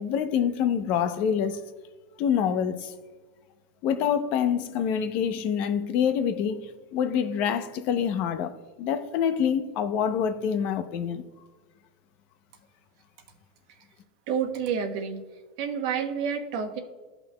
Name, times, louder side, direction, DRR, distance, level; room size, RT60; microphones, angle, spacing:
voice 1, 0.0-1.6 2.2-2.9 3.8-11.2, left 8 dB, 50° left, 0.7 m, -26 dB
voice 2, 14.3-15.2 15.6-16.8, right 7 dB, 60° right, 1.1 m, -29 dB
14.5 x 5.8 x 2.2 m
supercardioid pair, 135°, 3 cm